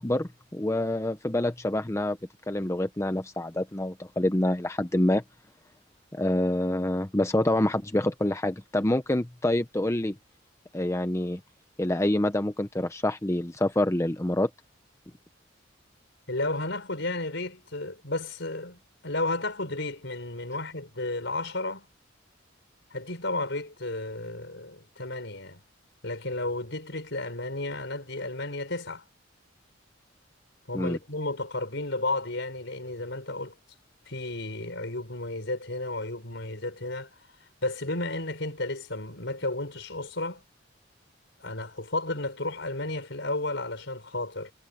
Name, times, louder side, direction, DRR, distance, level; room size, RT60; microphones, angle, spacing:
voice 1, 0.0-2.2 2.5-5.2 6.1-10.1 10.7-11.4 11.8-14.5 30.7-31.0, left 1 dB, 15° left, 0.7 m, -26 dB
voice 2, 16.3-21.9 22.9-25.6 26.0-29.0 30.7-33.5 34.1-37.1 37.6-40.4 41.4-44.5, left 2 dB, 65° left, 6.2 m, -33 dB
head